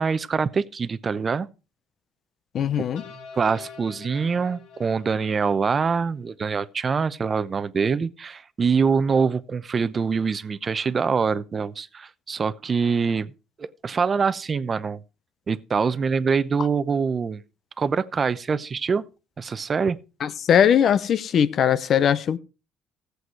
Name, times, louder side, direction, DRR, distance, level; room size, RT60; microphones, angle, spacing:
voice 1, 0.0-1.5 2.8-2.9 3.3-13.3 13.6-15.0 15.5-17.4 17.8-19.1 19.4-20.0, right 5 dB, 35° right, 0.8 m, -24 dB
voice 2, 2.5-3.0 20.2-22.4, left 8 dB, 55° left, 0.8 m, -20 dB
sound 1, 3.0-6.3, left 5 dB, 85° left, 3.1 m, -46 dB
14.5 x 8.0 x 4.6 m
cardioid pair, 90°, 0 cm